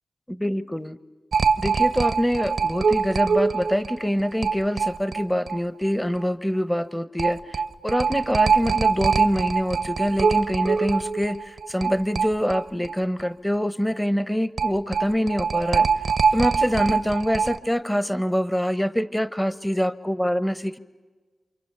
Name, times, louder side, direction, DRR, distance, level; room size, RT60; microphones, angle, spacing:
voice 1, 0.3-1.0 1.6-15.9 16.3-20.8, equal, 10° left, 16 dB, 1.0 m, -25 dB
sound 1, 1.3-5.6 5.8-5.9 6.2-6.3 7.2-12.9 13.2-13.3 14.6-17.6, right 5 dB, 80° right, 0.8 m, -23 dB
28.5 x 28.5 x 6.8 m, 1.3 s
cardioid pair, 50°, 0 cm